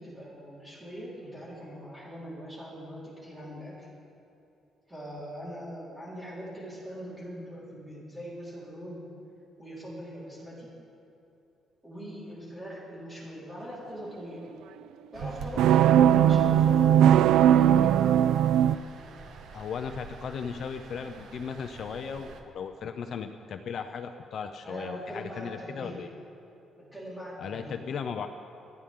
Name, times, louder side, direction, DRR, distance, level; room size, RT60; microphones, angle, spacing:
voice 1, 0.0-3.9 4.9-9.1 9.6-10.7 11.8-14.5 15.1-18.0 24.6-26.0 26.9-27.8, equal, 10° right, -7 dB, 4.3 m, -41 dB
sound 1, 15.1-22.4, right 5 dB, 65° right, 1.1 m, -45 dB
sound 2, 15.6-18.8, right 10 dB, 85° right, 0.3 m, -19 dB
voice 2, 19.5-26.1 27.4-28.3, left 6 dB, 50° left, 7 dB, 0.6 m, -36 dB
28.0 x 10.0 x 3.8 m, 2.7 s
cardioid pair, 155°, 0 cm